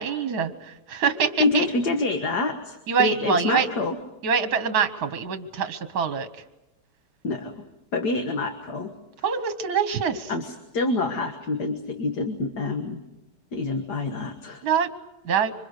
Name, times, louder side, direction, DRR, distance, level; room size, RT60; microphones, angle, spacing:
voice 1, 0.0-1.7 2.9-3.7 4.2-6.3 9.2-10.3 14.6-14.9 15.3-15.5, right 6 dB, 65° right, 10 dB, 1.7 m, -24 dB
voice 2, 1.4-4.0 7.2-7.6 7.9-8.9 10.3-13.0 13.5-14.6, left 3 dB, 75° left, 5 dB, 2.1 m, -27 dB
26.5 x 25.5 x 6.6 m, 0.96 s
omnidirectional pair, 1.8 m